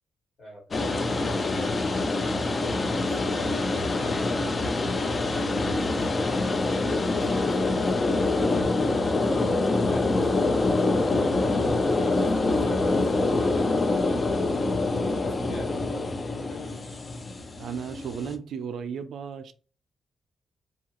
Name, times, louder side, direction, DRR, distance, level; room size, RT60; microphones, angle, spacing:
voice 1, 0.4-1.9 3.0-11.3 11.9-14.2 15.2-17.1, left 2 dB, 55° left, 1.3 m, -45 dB
sound 1, 0.7-18.4, left 2 dB, 40° left, 0.4 m, -25 dB
voice 2, 17.6-19.5, right 7 dB, 75° right, 0.3 m, -34 dB
2.7 x 2.3 x 2.8 m
cardioid pair, 70°, 0 cm